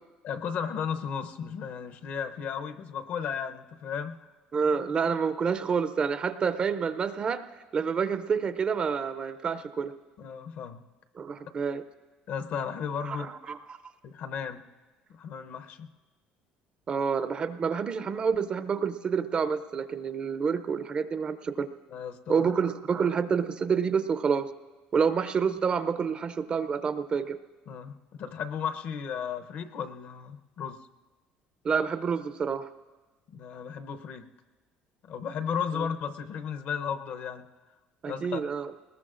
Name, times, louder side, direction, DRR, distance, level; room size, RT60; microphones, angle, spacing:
voice 1, 0.2-4.3 10.2-10.8 12.3-13.3 14.0-14.7 15.1-15.9 21.9-22.5 23.0-23.1 27.7-30.8 33.3-34.3 35.0-37.4 38.1-38.4, left 7 dB, 55° left, 8 dB, 0.7 m, -34 dB
voice 2, 4.5-7.4 7.7-9.9 11.2-11.8 13.1-13.2 13.5-13.8 16.9-21.7 22.3-24.5 24.9-27.4 31.6-32.7 38.0-38.7, right 6 dB, 30° right, 12 dB, 0.4 m, -28 dB
21.0 x 20.0 x 2.5 m, 1.2 s
cardioid pair, 135°, 3 cm